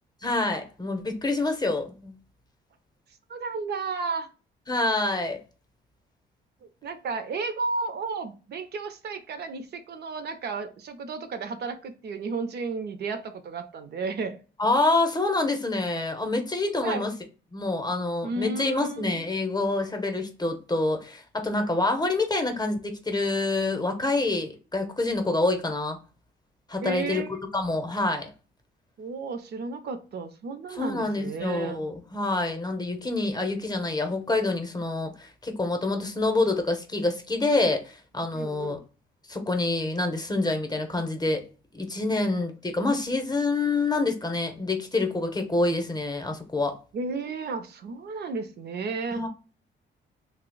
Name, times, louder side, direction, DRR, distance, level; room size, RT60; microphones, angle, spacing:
voice 1, 0.2-2.1 4.7-5.4 14.6-17.1 17.5-26.0 26.7-27.2 27.5-28.3 30.7-38.8 39.3-41.4 41.7-46.8 49.1-49.3, left 2 dB, 20° left, 0.7 m, -27 dB
voice 2, 3.3-4.3 6.8-14.4 16.8-17.1 18.2-19.1 26.8-27.3 29.0-31.8 38.3-38.8 46.9-49.2, right 4 dB, 55° right, 0.5 m, -33 dB
2.7 x 2.0 x 3.8 m
cardioid pair, 90°, 20 cm